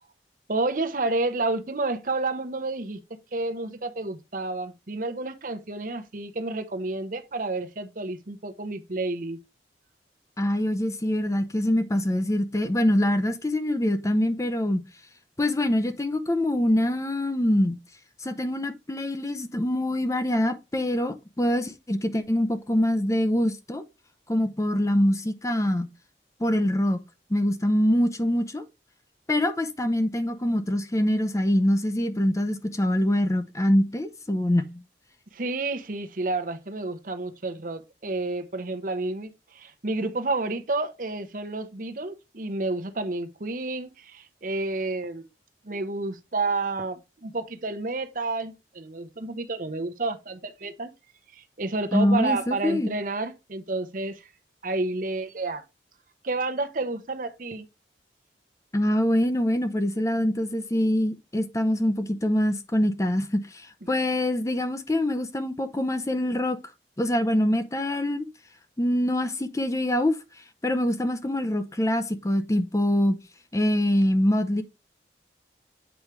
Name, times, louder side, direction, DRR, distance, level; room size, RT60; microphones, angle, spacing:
voice 1, 0.5-3.0 3.3-9.4 35.3-45.2 45.6-50.9 51.3-54.2 54.6-55.6 56.2-57.7, right 2 dB, 50° right, 0.8 m, -30 dB
voice 2, 10.4-14.8 15.4-17.8 18.2-23.8 24.3-25.9 26.4-27.0 27.3-28.6 29.3-34.8 51.9-52.9 58.7-66.6 67.0-68.3 68.8-70.2 70.6-73.2 73.5-74.6, left 1 dB, 15° left, 0.5 m, -24 dB
8.1 x 4.7 x 3.2 m
head